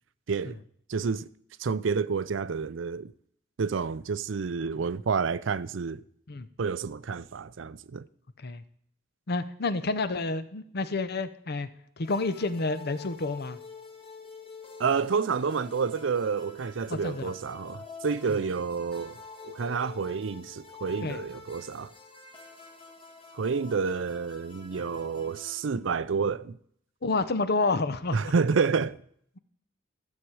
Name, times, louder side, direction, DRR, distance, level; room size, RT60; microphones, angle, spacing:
voice 1, 0.9-1.3 1.6-3.1 3.6-6.0 6.6-8.0 14.8-21.9 23.3-26.6 28.1-29.0, right 5 dB, 70° right, 0.5 m, -29 dB
voice 2, 9.3-11.7 12.0-13.6 16.9-17.3 18.3-18.4 21.0-21.2 27.0-28.3, left 3 dB, 55° left, 0.7 m, -29 dB
sound 1, 12.0-25.8, left 5 dB, 30° left, 1.4 m, -48 dB
13.5 x 7.5 x 4.7 m
head